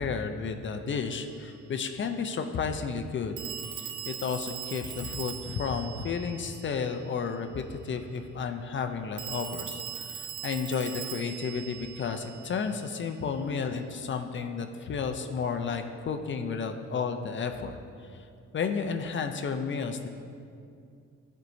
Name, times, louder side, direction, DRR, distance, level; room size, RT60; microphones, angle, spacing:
voice 1, 0.0-3.4 4.1-17.8 18.5-20.1, left 5 dB, 40° left, 6 dB, 0.5 m, -32 dB
Telephone, 1.1-1.2 3.4-7.1 9.2-12.9, right 9 dB, 90° right, 0.6 m, -40 dB
11.0 x 4.5 x 2.6 m, 2.4 s
cardioid pair, 85°, 30 cm